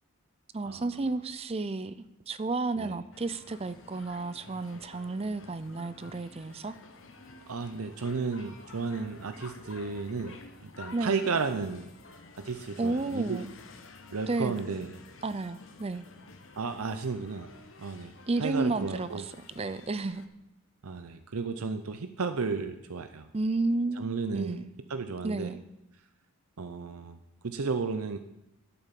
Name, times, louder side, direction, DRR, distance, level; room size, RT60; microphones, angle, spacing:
voice 1, 0.5-6.7 10.9-11.3 12.8-13.5 14.3-14.5 15.2-16.1 18.3-20.2 23.3-24.7 25.2-25.6, right 3 dB, 25° right, 14 dB, 0.4 m, -32 dB
sound 1, 3.1-20.3, left 3 dB, 60° left, 1.2 m, -51 dB
voice 2, 7.5-10.4 10.6-11.9 12.4-13.4 14.1-14.9 16.6-17.5 17.8-18.1 18.4-19.2 20.8-23.3 24.0-24.6 24.9-25.5 26.6-27.2 27.4-28.2, right 4 dB, 75° right, 9 dB, 0.7 m, -33 dB
11.0 x 8.8 x 7.5 m, 0.88 s
head